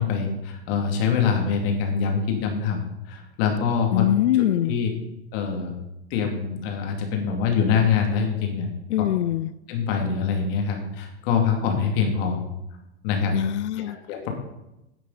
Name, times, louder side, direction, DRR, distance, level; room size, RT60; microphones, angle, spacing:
voice 1, 0.0-4.0 4.6-4.9 5.3-5.7 6.1-8.7 9.7-12.4 13.0-13.4 13.8-14.3, left 6 dB, 60° left, 2 dB, 2.6 m, -24 dB
voice 2, 3.9-4.8 8.9-9.5 13.3-14.0, left 12 dB, 85° left, 17 dB, 0.6 m, -23 dB
10.5 x 8.3 x 4.1 m, 0.91 s
hypercardioid pair, 115°, 33 cm